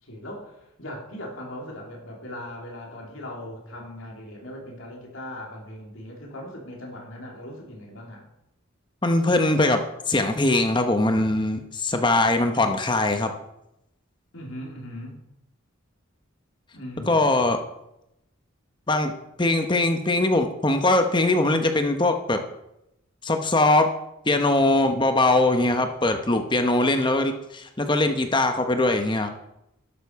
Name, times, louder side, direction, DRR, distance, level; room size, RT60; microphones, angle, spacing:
voice 1, 0.0-8.3 14.3-15.2 16.7-17.4, left 1 dB, 75° left, -1 dB, 3.2 m, -39 dB
voice 2, 9.0-13.3 17.1-17.6 18.9-19.1 19.4-22.4 23.2-23.9 24.3-29.3, left 2 dB, 20° left, 6 dB, 0.9 m, -21 dB
12.5 x 9.7 x 4.7 m, 0.85 s
head